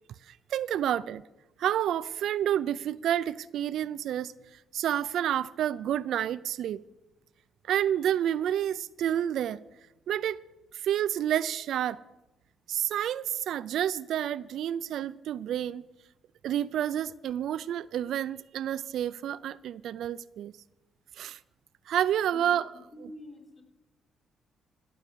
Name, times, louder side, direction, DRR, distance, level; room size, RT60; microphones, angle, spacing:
voice 1, 0.3-1.2 1.6-4.3 4.7-6.8 7.7-9.6 10.1-10.4 10.8-12.0 12.7-15.8 16.4-20.5 21.2-21.4 21.9-22.7, right 10 dB, 75° right, 0.4 m, -29 dB
voice 2, 22.9-23.6, left 1 dB, 30° left, 3.3 m, -48 dB
15.5 x 7.3 x 6.8 m
cardioid pair, 90°, 0 cm